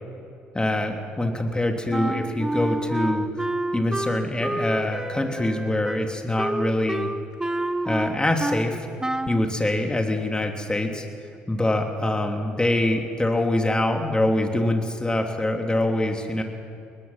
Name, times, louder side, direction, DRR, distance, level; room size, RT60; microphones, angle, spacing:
voice 1, 0.5-7.1 7.8-8.9 9.3-11.0 11.5-16.4, left 1 dB, 15° left, 3 dB, 3.1 m, -24 dB
Wind instrument woodwind instrument, 1.9-8.7 9.0-9.4, right 1 dB, 10° right, 1.0 m, -29 dB
22.5 x 20.0 x 6.0 m, 2.5 s
hypercardioid pair, 55°, 6 cm